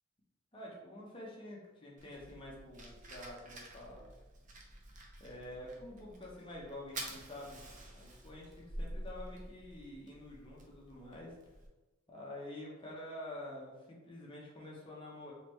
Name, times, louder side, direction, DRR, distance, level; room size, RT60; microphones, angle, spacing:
voice 1, 0.5-4.1 5.2-7.6 7.9-11.3 12.1-15.3, left 1 dB, 25° left, -3 dB, 0.9 m, -48 dB
Fire, 2.0-11.7, right 1 dB, 40° right, 0.6 m, -49 dB
3.9 x 3.1 x 3.2 m, 1.2 s
head